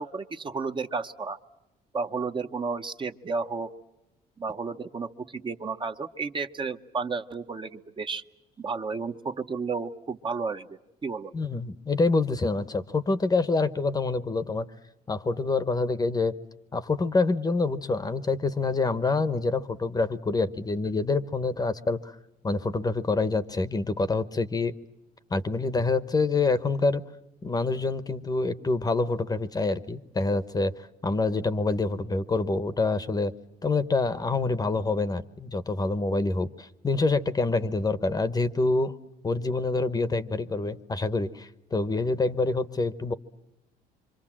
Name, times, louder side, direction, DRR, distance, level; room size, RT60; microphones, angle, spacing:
voice 1, 0.0-1.4 1.9-3.7 4.4-8.2 8.6-11.3, right 4 dB, 30° right, 7 dB, 0.9 m, -32 dB
voice 2, 11.3-14.7 15.1-16.4 16.7-22.1 22.4-24.7 25.3-27.0 27.4-30.7 31.0-33.3 33.6-38.9 39.2-43.1, left 3 dB, 20° left, 14 dB, 1.0 m, -26 dB
26.5 x 25.5 x 7.4 m, 0.93 s
cardioid pair, 110°, 17 cm